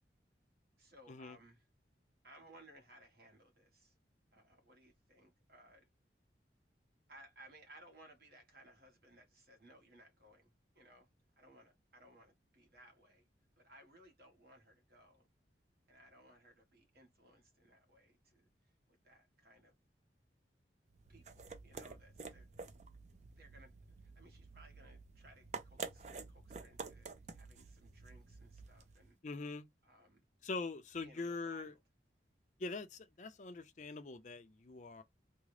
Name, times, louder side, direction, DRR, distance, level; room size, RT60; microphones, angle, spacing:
voice 1, 0.8-1.7 2.2-3.9 4.3-5.9 7.1-11.1 11.4-13.3 13.6-15.3 15.9-19.8 21.1-22.9 23.4-23.7 24.0-29.2 29.8-30.2 30.9-31.8, right 1 dB, 60° right, 1.3 m, -62 dB
sound 1, 20.9-29.1, right 4 dB, 40° right, 0.5 m, -50 dB
voice 2, 29.2-29.7 30.4-31.7 32.6-35.0, left 3 dB, 45° left, 0.5 m, -43 dB
3.6 x 2.1 x 3.2 m
head